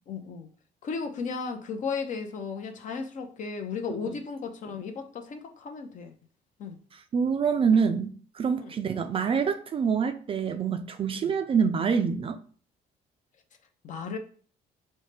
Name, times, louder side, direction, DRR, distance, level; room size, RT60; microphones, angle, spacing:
voice 1, 0.1-0.5 0.8-6.1 6.6-6.8 8.6-8.7 11.2-11.4 13.8-14.2, left 5 dB, 50° left, 0.7 m, -35 dB
voice 2, 7.1-12.4, right 6 dB, 35° right, 0.4 m, -26 dB
5.4 x 2.1 x 3.2 m
cardioid pair, 110°, 17 cm